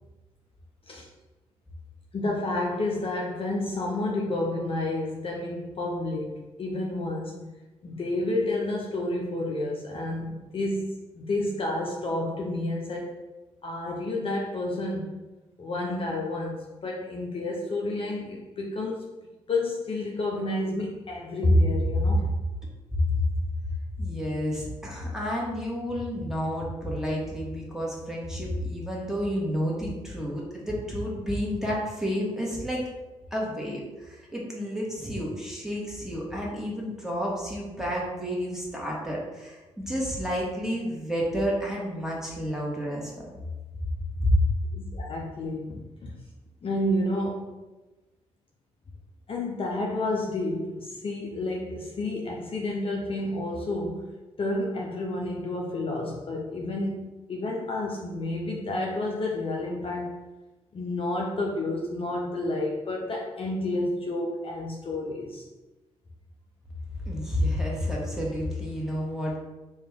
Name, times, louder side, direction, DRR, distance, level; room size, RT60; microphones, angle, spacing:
voice 1, 2.1-7.5 7.8-13.2 13.6-15.2 15.6-19.1 19.5-22.4 44.7-46.2 46.6-47.6 49.3-54.1 54.4-60.1 60.7-65.4, left 1 dB, 40° left, -1 dB, 0.5 m, -29 dB
voice 2, 24.0-32.8 33.3-43.1 44.2-44.3 67.1-69.4, equal, 5° right, -3 dB, 1.4 m, -30 dB
3.2 x 2.3 x 3.4 m, 1.1 s
hypercardioid pair, 40°, 14 cm